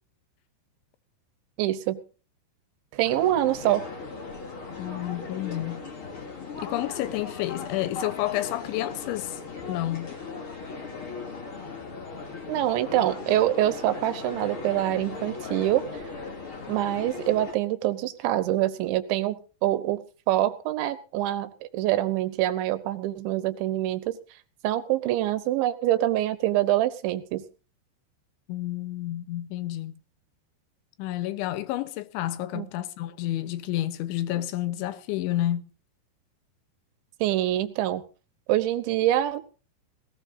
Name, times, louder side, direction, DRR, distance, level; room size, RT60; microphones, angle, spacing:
voice 1, 1.6-2.0 2.9-3.8 12.5-16.1 16.7-24.2 24.6-27.5 32.5-32.7 37.2-38.0 38.5-39.5, right 14 dB, 80° right, 3.4 m, -25 dB
sound 1, 3.0-17.5, left 4 dB, 35° left, 3.0 m, -38 dB
voice 2, 4.8-5.8 6.6-9.4 9.7-10.2 28.5-29.9 31.0-35.7, left 14 dB, 85° left, 3.3 m, -30 dB
19.0 x 18.0 x 2.7 m
omnidirectional pair, 5.3 m